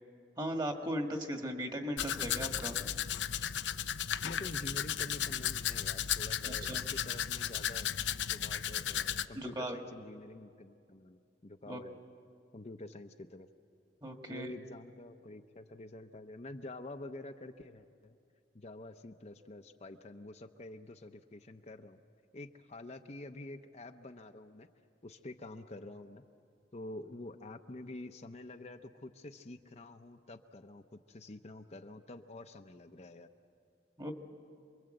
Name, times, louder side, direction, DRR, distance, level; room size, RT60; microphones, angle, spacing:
voice 1, 0.4-2.8 6.5-6.8 9.4-9.8 11.7-11.8 14.0-14.5 34.0-34.1, equal, 25° right, 4 dB, 1.8 m, -37 dB
Domestic sounds home sounds, 2.0-9.2, left 10 dB, 90° left, 0.7 m, -35 dB
voice 2, 4.2-7.9 8.3-12.0 12.5-13.5 14.3-18.2 18.5-22.0 22.3-24.7 25.0-26.3 26.7-33.3, left 2 dB, 40° left, 5 dB, 0.8 m, -48 dB
27.5 x 22.5 x 7.9 m, 2.4 s
head